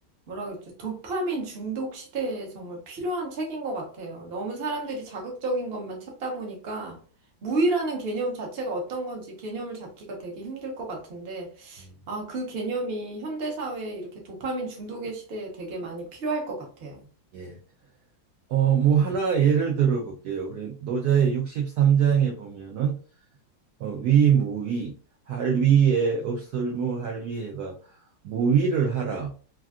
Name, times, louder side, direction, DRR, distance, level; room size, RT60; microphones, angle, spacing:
voice 1, 0.3-7.0 7.4-17.0, right 2 dB, 45° right, 0.8 m, -32 dB
voice 2, 18.5-23.0 23.8-24.9 25.3-28.0 28.2-29.3, right 7 dB, 75° right, 0.9 m, -23 dB
3.3 x 2.5 x 2.3 m
omnidirectional pair, 2.1 m